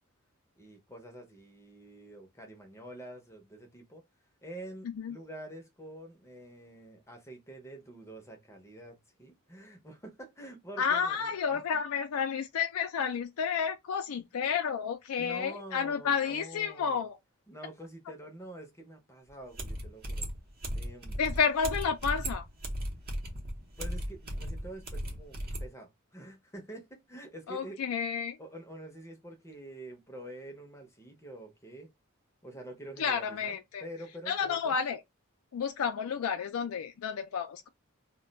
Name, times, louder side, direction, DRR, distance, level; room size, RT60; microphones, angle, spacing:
voice 1, 0.6-4.0 4.4-11.6 15.2-17.0 17.5-20.3 20.7-21.2 23.3-23.4 23.7-27.8 28.4-31.9 32.4-34.8, right 1 dB, 15° left, 0.6 m, -47 dB
voice 2, 4.8-5.2 10.8-17.2 21.2-22.4 27.5-28.4 33.0-33.8 34.3-35.0 35.5-37.7, left 6 dB, 80° left, 0.4 m, -31 dB
sound 1, 19.3-19.4 19.6-25.7, equal, 45° right, 0.7 m, -36 dB
2.3 x 2.1 x 3.8 m
head